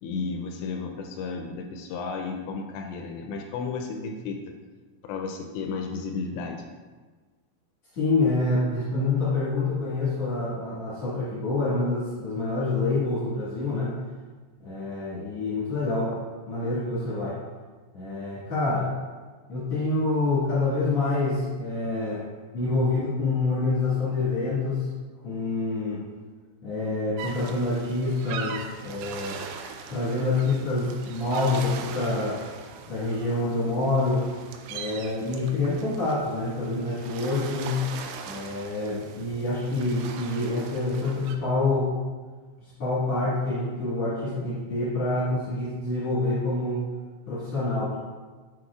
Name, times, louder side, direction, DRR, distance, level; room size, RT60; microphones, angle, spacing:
voice 1, 0.0-4.5 5.0-6.7, left 4 dB, 85° left, 3 dB, 2.6 m, -33 dB
voice 2, 7.9-13.9 14.6-16.1 16.5-17.4 17.9-18.9 19.5-22.2 22.5-24.8 25.2-26.0 26.6-29.4 29.9-32.4 32.9-34.3 34.7-37.8 38.3-41.9 42.6-46.8 47.3-48.0, left 2 dB, 65° left, -10 dB, 1.6 m, -27 dB
sound 1, 27.2-41.4, right 6 dB, 90° right, 2.4 m, -40 dB
7.7 x 6.2 x 2.4 m, 1.4 s
omnidirectional pair, 5.5 m